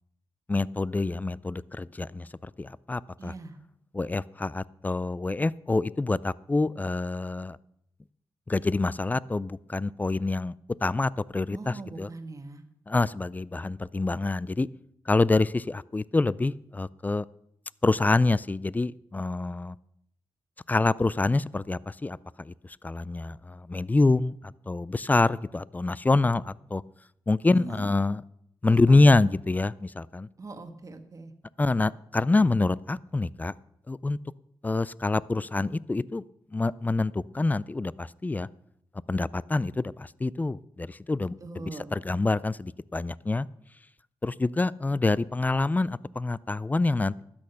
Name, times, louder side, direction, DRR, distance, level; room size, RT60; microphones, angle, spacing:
voice 1, 0.5-2.3 2.6-3.3 3.9-7.6 8.5-10.5 10.8-12.1 12.9-14.7 15.1-17.2 17.8-19.7 20.7-22.5 22.8-24.3 24.7-26.8 27.3-28.2 28.6-30.3 31.6-33.5 33.9-34.2 34.6-36.2 36.5-38.5 39.1-41.6 41.9-43.5 44.2-47.2, left 3 dB, 20° left, 21 dB, 0.3 m, -26 dB
voice 2, 3.2-3.6 11.5-12.6 27.5-27.9 29.0-29.2 30.4-31.3 41.4-42.0, right 3 dB, 40° right, 8 dB, 1.4 m, -41 dB
12.5 x 8.7 x 5.6 m, 0.76 s
cardioid pair, 70°, 9 cm